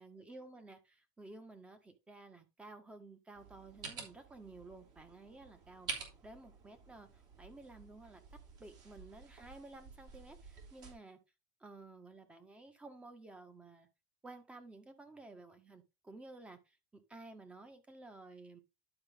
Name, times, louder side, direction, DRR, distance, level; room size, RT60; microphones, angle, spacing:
voice 1, 0.0-5.9 6.2-8.2 8.6-11.2 11.6-13.9 14.2-18.6, right 2 dB, 10° right, 1.5 m, -53 dB
sound 1, 3.4-10.9, right 5 dB, 40° right, 3.3 m, -50 dB
11.5 x 4.8 x 3.6 m
supercardioid pair, 135°, 10 cm